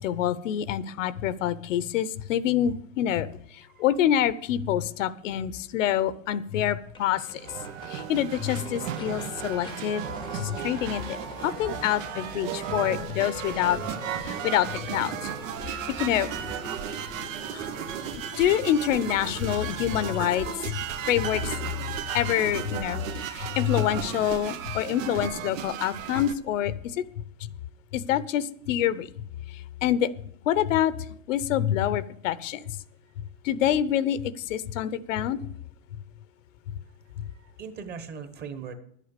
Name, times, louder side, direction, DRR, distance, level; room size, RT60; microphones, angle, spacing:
voice 1, 0.0-3.3 3.5-7.4 7.9-10.0 10.3-11.2 11.4-13.8 14.2-15.3 15.6-16.3 17.5-17.7 18.4-20.8 21.1-21.5 22.1-27.0 27.4-27.5 27.9-29.1 29.5-30.1 30.5-30.9 31.3-32.6 33.4-35.4 37.2-37.3, left 11 dB, 75° left, 16 dB, 0.9 m, -26 dB
sound 1, 6.3-6.4 6.6-6.7 6.9-7.0 7.3-22.5, left 5 dB, 15° left, 0.7 m, -43 dB
sound 2, 7.0-26.3, right 10 dB, 85° right, 1.2 m, -35 dB
voice 2, 37.2-38.7, right 6 dB, 25° right, 10 dB, 1.2 m, -42 dB
11.5 x 8.5 x 6.7 m, 0.65 s
supercardioid pair, 155°, 38 cm